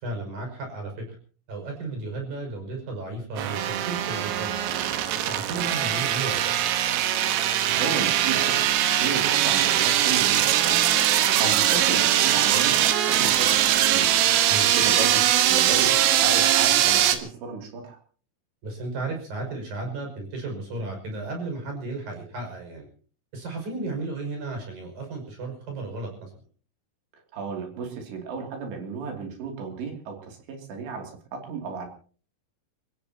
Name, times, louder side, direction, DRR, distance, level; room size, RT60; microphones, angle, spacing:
voice 1, 0.0-1.1 1.5-4.5 5.1-6.6 14.5-14.8 18.6-22.9 23.3-26.3, right 2 dB, 45° right, 2 dB, 7.3 m, -34 dB
sound 1, 3.4-17.2, right 11 dB, 90° right, 4.0 m, -21 dB
voice 2, 7.7-10.8 11.1-14.1 14.7-18.0 27.1-31.9, right 5 dB, 60° right, 2 dB, 4.7 m, -34 dB
29.5 x 15.5 x 2.9 m, 0.42 s
omnidirectional pair, 5.8 m